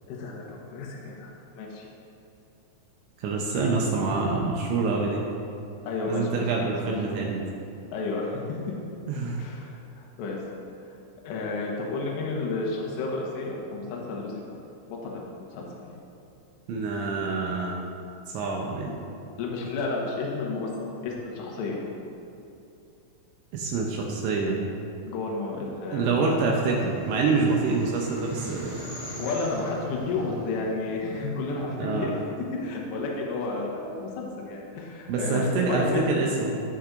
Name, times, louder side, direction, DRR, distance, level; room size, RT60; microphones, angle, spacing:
voice 1, 0.1-1.9 3.5-3.7 5.8-6.9 7.9-8.7 9.4-10.4 11.2-14.4 14.9-16.0 19.4-20.7 21.0-21.8 25.0-26.2 29.2-32.2 32.6-36.0, left 3 dB, 70° left, -2 dB, 3.0 m, -32 dB
voice 2, 3.2-5.2 6.1-7.4 9.1-9.4 16.7-17.8 18.3-18.9 23.5-24.6 25.9-28.8 31.8-32.1 35.1-36.6, right 3 dB, 80° right, -1 dB, 2.7 m, -26 dB
sound 1, 26.7-31.6, equal, 50° left, 1.2 m, -42 dB
17.0 x 5.9 x 2.6 m, 2.7 s
omnidirectional pair, 5.9 m